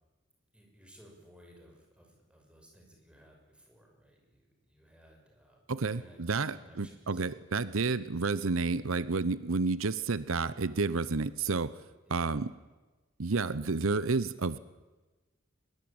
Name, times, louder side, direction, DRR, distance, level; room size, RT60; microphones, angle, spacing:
voice 1, 0.5-7.2 7.7-7.8 12.0-12.4, equal, 5° right, 1 dB, 6.4 m, -58 dB
voice 2, 5.7-11.7 12.1-12.5 13.2-14.6, right 4 dB, 90° right, 16 dB, 0.9 m, -30 dB
23.0 x 22.0 x 8.9 m, 1.2 s
head